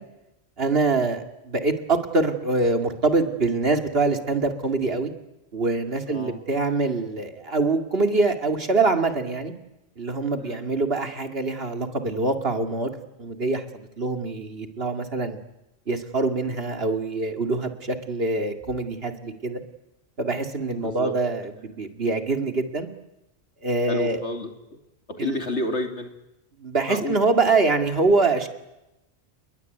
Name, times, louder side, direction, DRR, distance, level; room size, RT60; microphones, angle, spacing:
voice 1, 0.6-5.1 5.5-9.5 10.0-12.9 13.2-15.4 15.9-19.6 20.2-22.9 23.6-24.2 25.2-25.4 26.6-28.5, right 3 dB, 60° right, 6 dB, 2.6 m, -24 dB
voice 2, 6.1-6.4 10.4-10.7 20.7-21.2 23.9-24.8 25.1-26.1 26.9-27.2, left 2 dB, 85° left, 5 dB, 3.2 m, -31 dB
29.0 x 21.5 x 9.5 m, 0.93 s
omnidirectional pair, 1.1 m